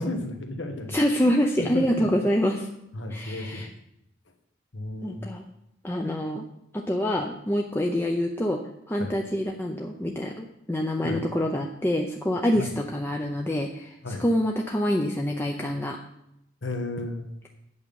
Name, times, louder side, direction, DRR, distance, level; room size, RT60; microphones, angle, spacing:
voice 1, 0.0-2.0 2.9-3.7 4.7-5.3 9.0-9.1 11.0-11.2 12.5-12.7 14.0-14.2 16.6-17.3, left 2 dB, 75° left, 5 dB, 1.3 m, -33 dB
voice 2, 0.9-2.7 3.1-3.7 5.0-5.4 5.8-6.4 6.7-8.6 8.9-16.0, equal, 10° left, 1 dB, 0.5 m, -26 dB
8.6 x 5.2 x 7.0 m, 0.80 s
head